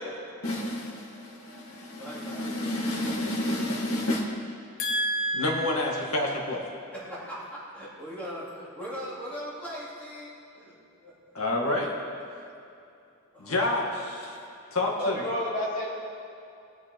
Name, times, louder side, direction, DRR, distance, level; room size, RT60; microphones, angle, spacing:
voice 1, 0.4-4.3 4.8-6.7 11.3-12.0 13.4-14.4 14.7-15.2, left 1 dB, 90° left, -1 dB, 1.7 m, -29 dB
voice 2, 1.6-2.8 6.9-10.8 11.0-11.4 12.1-12.2 13.3-13.6 13.9-14.1, equal, 5° left, -9 dB, 3.2 m, -40 dB
voice 3, 15.0-15.9, left 1 dB, 40° left, -5 dB, 2.8 m, -29 dB
19.0 x 7.7 x 4.6 m, 2.6 s
head